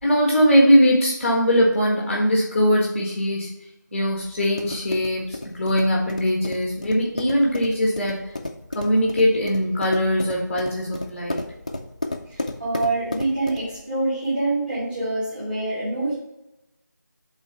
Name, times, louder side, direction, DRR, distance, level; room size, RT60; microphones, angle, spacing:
voice 1, 0.0-3.5 3.9-8.2 8.7-11.5, equal, ahead, -3 dB, 0.8 m, -20 dB
sound 1, 4.0-13.8, left 2 dB, 25° left, 0.4 m, -34 dB
voice 2, 12.3-16.1, right 2 dB, 30° right, -11 dB, 3.1 m, -26 dB
8.1 x 3.7 x 5.6 m, 0.88 s
figure-of-eight pair, 175°, 10 cm